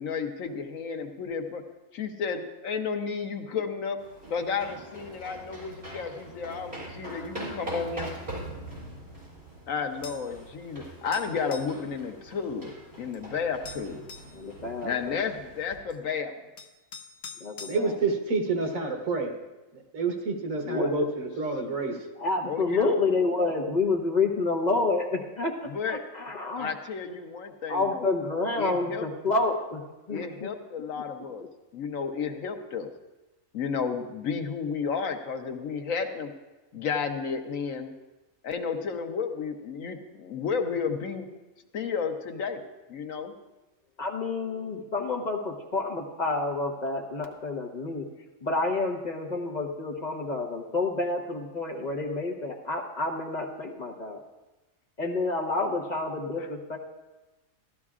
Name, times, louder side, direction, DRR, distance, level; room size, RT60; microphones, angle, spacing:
voice 1, 0.0-1.6 1.9-4.0 4.3-8.1 9.7-12.7 13.0-14.0 14.8-16.5 22.4-22.9 25.7-26.0 26.6-28.1 28.6-29.0 30.1-31.4 31.7-32.9 33.5-36.3 36.7-37.9 38.4-41.3 41.7-42.6 42.9-43.3 56.4-56.5, left 5 dB, 80° left, 5 dB, 1.3 m, -32 dB
sound 1, 4.0-15.8, right 1 dB, 50° right, 5.0 m, -42 dB
sound 2, 10.0-10.3 11.1-11.8 13.1-13.2 13.6-14.4 15.9-16.0 16.6-17.8, left 5 dB, 55° left, 0.6 m, -43 dB
voice 2, 14.3-15.3 17.4-17.9 20.6-20.9 22.2-26.7 27.7-29.8 30.1-30.5 44.0-48.0 48.4-54.2 55.0-56.8, left 3 dB, 35° left, 1 dB, 1.1 m, -29 dB
voice 3, 17.7-19.3 19.7-22.1, right 3 dB, 80° right, 3 dB, 1.7 m, -28 dB
15.5 x 12.0 x 2.4 m, 1.1 s
omnidirectional pair, 1.4 m